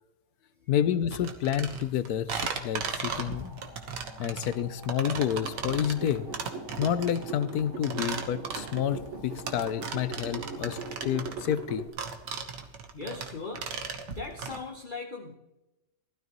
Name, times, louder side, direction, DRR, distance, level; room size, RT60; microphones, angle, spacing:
voice 1, 0.7-3.6 4.2-6.3 6.8-11.8, left 10 dB, 70° left, 14 dB, 1.0 m, -29 dB
sound 1, 1.1-14.6, right 6 dB, 75° right, 1.8 m, -36 dB
sound 2, 2.8-11.2, left 2 dB, 15° left, 1.5 m, -52 dB
sound 3, 5.1-11.9, right 3 dB, 45° right, 1.5 m, -41 dB
voice 2, 12.9-13.7 14.0-15.4, left 3 dB, 40° left, 3 dB, 0.8 m, -39 dB
16.0 x 12.5 x 3.1 m, 1.0 s
omnidirectional pair, 1.9 m